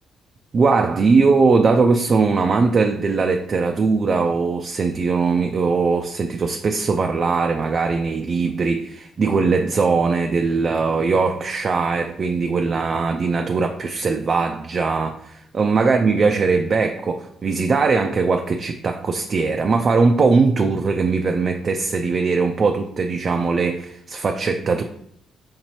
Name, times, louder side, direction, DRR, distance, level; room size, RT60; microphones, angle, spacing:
voice 1, 0.5-24.8, right 4 dB, 45° right, 4 dB, 0.3 m, -20 dB
5.0 x 2.7 x 3.0 m, 0.72 s
cardioid pair, 90°, 0 cm